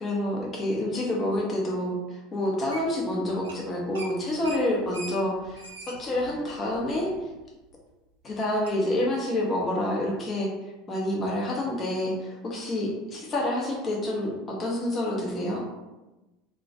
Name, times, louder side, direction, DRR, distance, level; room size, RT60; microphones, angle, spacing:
voice 1, 0.0-7.1 8.2-10.5 10.9-15.6, left 1 dB, 30° left, -2 dB, 0.6 m, -28 dB
sound 1, 2.7-3.1 3.4-3.6 3.9-7.3 7.7-7.8 8.7-8.8, right 2 dB, 70° right, 0.4 m, -42 dB
2.2 x 2.1 x 2.7 m, 1.1 s
figure-of-eight pair, 75°, 0 cm